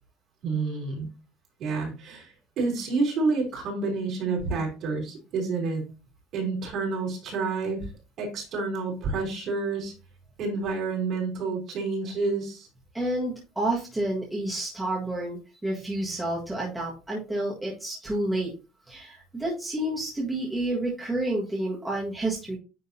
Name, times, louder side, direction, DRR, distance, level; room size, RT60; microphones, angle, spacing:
voice 1, 0.4-1.1 1.6-5.8 6.3-7.9 8.2-9.9 10.4-12.7, right 4 dB, 45° right, -1 dB, 3.6 m, -29 dB
voice 2, 12.9-18.5 18.9-22.6, right 1 dB, 5° right, -5 dB, 1.6 m, -29 dB
9.6 x 3.6 x 2.8 m, 0.30 s
cardioid pair, 165°, 0 cm